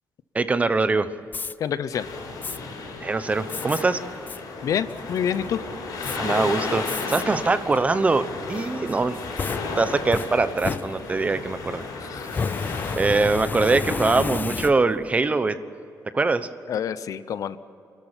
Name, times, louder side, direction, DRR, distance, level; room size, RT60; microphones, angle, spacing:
voice 1, 0.3-1.1 3.0-4.0 6.1-9.2 9.8-11.9 13.0-15.6 16.1-16.5, right 3 dB, 20° right, 12 dB, 0.9 m, -23 dB
Fire, 1.3-1.5 2.4-2.6 3.5-3.8 4.3-4.4 4.9-5.4 6.0-6.2 6.9-7.2 7.7-7.8 8.9-11.4 12.2-15.1, left 5 dB, 30° left, 0.5 m, -31 dB
voice 2, 1.6-2.1 4.6-5.6 12.0-12.4 16.7-17.6, left 8 dB, 65° left, 14 dB, 0.8 m, -27 dB
sound 1, 1.9-13.0, left 3 dB, 85° left, 6.1 m, -34 dB
28.5 x 13.0 x 9.0 m, 2.8 s
wide cardioid pair, 145°, 6 cm